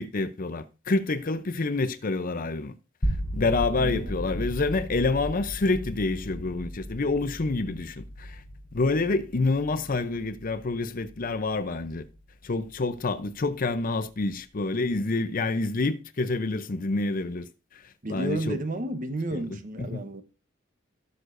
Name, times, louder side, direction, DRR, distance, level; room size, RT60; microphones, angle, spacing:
voice 1, 0.0-2.7 3.3-8.4 8.7-12.0 12.4-17.5 18.1-18.6 19.3-20.0, left 3 dB, 45° left, 0.6 m, -28 dB
sound 1, 3.0-13.0, equal, 70° left, 3.7 m, -36 dB
voice 2, 3.8-4.5 18.0-20.2, right 1 dB, 45° right, 1.0 m, -32 dB
17.0 x 6.5 x 2.6 m
head